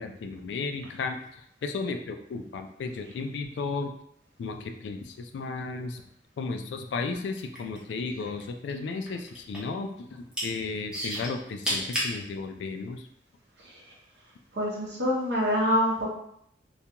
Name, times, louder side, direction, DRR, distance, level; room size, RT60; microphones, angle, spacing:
voice 1, 0.0-3.9 4.4-6.0 6.4-13.1, left 4 dB, 75° left, 6 dB, 0.3 m, -34 dB
sound 1, 7.3-8.4 8.7-9.8 10.1-10.5 10.9-12.1 12.8-12.9, equal, 5° right, 0.6 m, -31 dB
voice 2, 14.5-16.1, equal, 70° right, -3 dB, 0.8 m, -26 dB
2.4 x 2.2 x 2.8 m, 0.72 s
head